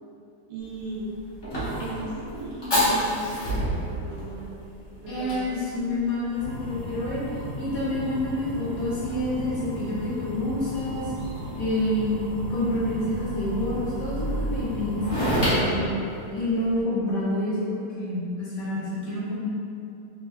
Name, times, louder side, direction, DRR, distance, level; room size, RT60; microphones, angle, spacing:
voice 1, 0.5-1.1 1.6-4.5 5.0-5.5, right 2 dB, 80° right, -5 dB, 1.4 m, -37 dB
Fire, 0.6-16.8, equal, 30° left, 0.4 m, -31 dB
voice 2, 5.1-7.2 7.6-11.1 11.6-15.9 16.3-19.5, left 1 dB, 60° left, -8 dB, 1.1 m, -28 dB
3.4 x 2.9 x 2.3 m, 2.6 s
omnidirectional pair, 1.9 m